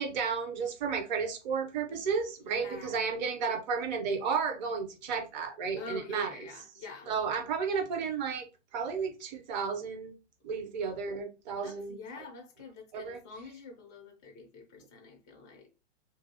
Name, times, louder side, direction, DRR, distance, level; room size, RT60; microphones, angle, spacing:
voice 1, 0.0-6.3 7.1-8.4 8.7-10.1 10.4-12.0 12.9-13.2, right 5 dB, 35° right, 0.7 m, -32 dB
voice 2, 2.4-3.0 5.8-7.1 11.6-15.7, left 5 dB, 15° left, 0.4 m, -47 dB
2.6 x 2.3 x 2.7 m
figure-of-eight pair, 115°, 36 cm